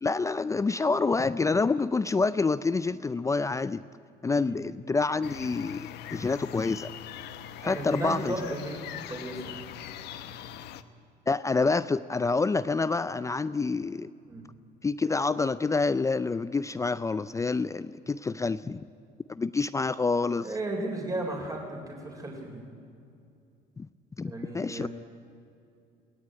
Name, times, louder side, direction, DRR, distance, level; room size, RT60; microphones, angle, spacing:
voice 1, 0.0-3.8 4.2-6.9 7.6-8.3 11.3-14.1 14.8-18.9 19.3-20.5 23.8-23.9 24.2-24.9, left 4 dB, 20° left, 15 dB, 0.5 m, -27 dB
voice 2, 4.2-4.6 7.6-9.6 14.2-14.5 20.4-22.7 24.2-24.9, right 2 dB, 20° right, 1 dB, 3.8 m, -35 dB
sound 1, 5.2-10.8, left 10 dB, 80° left, 1.0 m, -42 dB
22.0 x 17.5 x 9.7 m, 2.5 s
cardioid pair, 110°, 17 cm